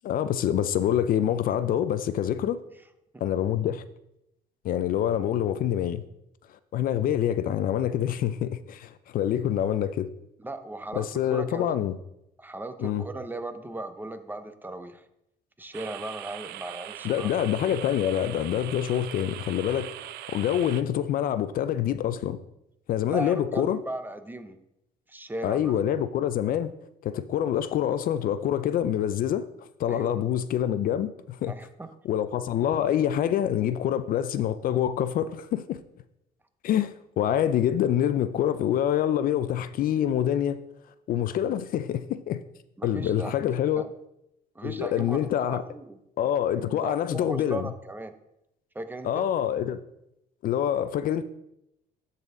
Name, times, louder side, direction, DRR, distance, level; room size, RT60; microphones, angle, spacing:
voice 1, 0.0-2.6 3.2-3.8 4.6-6.0 6.7-10.1 11.0-12.0 12.8-13.0 17.0-19.9 20.3-22.4 22.9-23.8 25.4-26.7 27.0-29.5 29.8-31.5 32.0-35.8 36.6-40.6 41.1-42.4 42.8-43.9 44.6-45.6 46.2-47.7 49.0-49.8 50.4-51.2, left 10 dB, 55° left, 0.4 m, -26 dB
voice 2, 10.4-11.8 12.4-15.0 15.6-17.3 23.1-24.6 25.1-25.8 29.9-30.1 31.5-31.9 42.8-43.9 44.6-46.0 46.6-48.1 48.7-49.3, right 2 dB, 10° right, 0.6 m, -37 dB
sound 1, 15.7-20.8, right 14 dB, 75° right, 0.4 m, -41 dB
12.0 x 4.1 x 3.7 m
cardioid pair, 110°, 17 cm